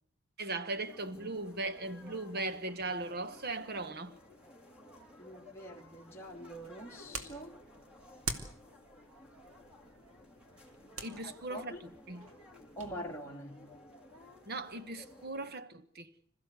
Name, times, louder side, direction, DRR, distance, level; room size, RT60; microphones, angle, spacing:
voice 1, 0.4-4.2 11.0-12.3 14.4-16.1, right 2 dB, 45° right, 1.2 m, -38 dB
sound 1, 0.7-15.5, left 1 dB, 5° right, 3.3 m, -56 dB
voice 2, 5.2-7.6 11.2-11.8 12.8-13.7, equal, 10° left, 2.3 m, -45 dB
sound 2, 6.2-13.0, right 4 dB, 70° right, 2.4 m, -46 dB
26.5 x 15.0 x 8.2 m
head